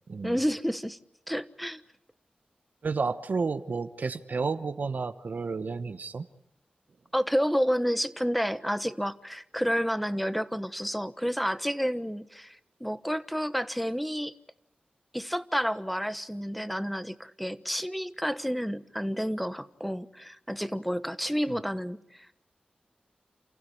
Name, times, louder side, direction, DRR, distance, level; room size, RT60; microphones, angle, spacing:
voice 1, 0.2-1.0 1.3-1.8 7.1-14.3 15.1-22.3, equal, ahead, 1.2 m, -30 dB
voice 2, 2.8-6.2, right 4 dB, 70° right, 1.0 m, -31 dB
29.0 x 15.5 x 10.0 m
cardioid pair, 55°, 3 cm